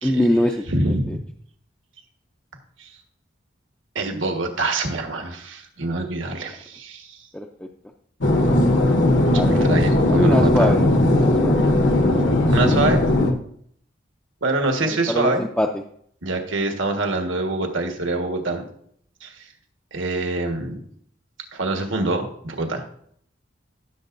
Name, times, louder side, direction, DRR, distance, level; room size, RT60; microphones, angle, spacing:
voice 1, 0.0-0.6 7.3-7.5 9.3-9.6 10.1-11.6 12.0-12.2 14.8-15.7, left 1 dB, 5° left, 1 dB, 0.4 m, -23 dB
voice 2, 0.7-1.2 2.8-2.9 3.9-7.2 9.3-10.8 12.5-13.0 14.4-15.5 16.2-18.6 19.2-19.5 19.9-20.8 21.5-22.8, right 2 dB, 80° right, 4 dB, 1.5 m, -25 dB
sound 1, 8.2-13.3, left 1 dB, 70° left, 1.1 m, -18 dB
15.0 x 6.9 x 2.6 m, 0.65 s
head